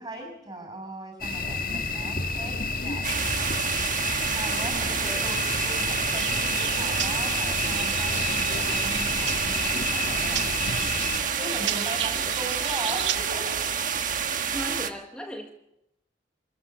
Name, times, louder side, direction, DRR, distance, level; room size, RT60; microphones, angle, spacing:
voice 1, 0.0-3.2 4.3-10.5 11.3-13.7, right 1 dB, 25° right, 4 dB, 6.6 m, -38 dB
sound 1, 1.2-11.2, left 3 dB, 50° left, 1.8 m, -30 dB
sound 2, 3.0-14.9, right 7 dB, 45° right, 1.4 m, -28 dB
voice 2, 4.5-5.3 14.3-15.5, equal, 5° left, 1 dB, 1.6 m, -38 dB
sound 3, 6.1-13.2, right 11 dB, 80° right, 0.7 m, -35 dB
26.5 x 14.5 x 7.0 m, 0.85 s
head